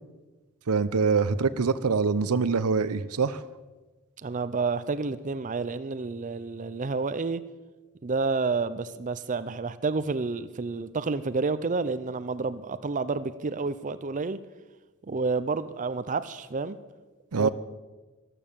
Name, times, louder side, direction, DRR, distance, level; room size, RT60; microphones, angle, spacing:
voice 1, 0.7-3.4 17.3-17.5, right 5 dB, 85° right, 15 dB, 0.7 m, -24 dB
voice 2, 4.2-7.4 8.0-14.4 15.0-16.8 17.4-17.5, right 4 dB, 35° right, 13 dB, 0.5 m, -29 dB
13.5 x 12.5 x 7.3 m, 1.2 s
head